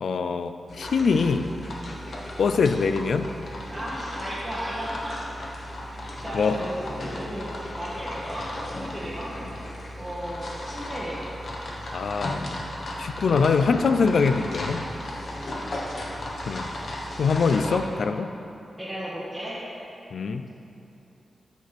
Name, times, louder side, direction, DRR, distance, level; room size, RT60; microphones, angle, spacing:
voice 1, 0.0-1.5 2.4-3.3 6.3-6.6 11.9-12.5 13.0-14.8 16.5-16.7 17.2-18.3 20.1-20.4, left 5 dB, 75° left, 9 dB, 0.4 m, -23 dB
sound 1, 0.7-17.8, left 1 dB, 55° left, 1.3 m, -35 dB
voice 2, 3.7-5.2 6.2-9.6 10.0-11.2 15.4-15.8 17.6-18.0 18.8-19.6, equal, 5° right, -10 dB, 1.7 m, -35 dB
13.0 x 6.6 x 3.5 m, 2.8 s
wide cardioid pair, 95°, 0 cm